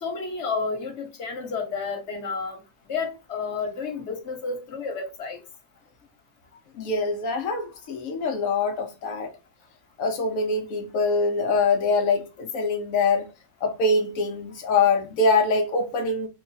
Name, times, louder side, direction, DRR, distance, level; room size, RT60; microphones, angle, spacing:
voice 1, 0.0-2.6 2.9-5.4, left 4 dB, 50° left, 0.9 m, -31 dB
voice 2, 6.7-9.3 10.0-13.2 13.6-16.3, left 3 dB, 90° left, 0.7 m, -24 dB
3.1 x 2.3 x 3.9 m
omnidirectional pair, 2.2 m